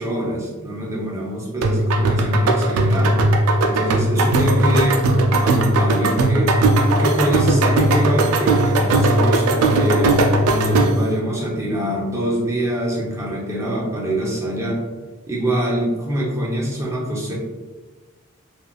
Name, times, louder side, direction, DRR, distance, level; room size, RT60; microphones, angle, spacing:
voice 1, 0.0-3.2 3.6-5.1 5.4-6.6 6.9-10.1 10.4-14.8 15.3-17.3, right 1 dB, 15° right, -4 dB, 0.6 m, -24 dB
sound 1, 1.6-11.1, right 2 dB, 85° right, 0.4 m, -17 dB
3.2 x 2.4 x 2.3 m, 1.3 s
head